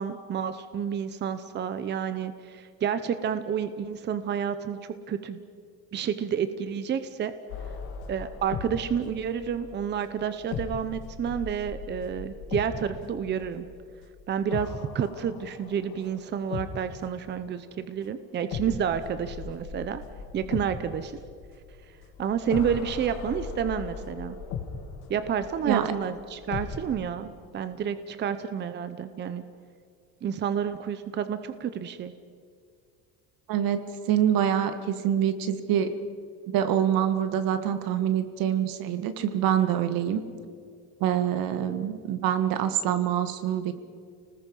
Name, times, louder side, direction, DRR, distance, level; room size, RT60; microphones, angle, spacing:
voice 1, 0.0-5.4 5.9-7.3 8.1-13.7 14.3-20.0 20.3-21.1 22.2-24.4 25.1-29.4 30.2-32.1, right 8 dB, 30° right, 11 dB, 0.8 m, -30 dB
sound 1, 7.5-17.3 18.5-26.9, left 6 dB, 85° left, 2.8 m, -39 dB
voice 2, 33.5-33.8 34.1-35.9 36.5-40.2 41.0-43.7, right 10 dB, 70° right, 9 dB, 1.8 m, -25 dB
29.5 x 20.0 x 5.5 m, 2.2 s
cardioid pair, 155°, 36 cm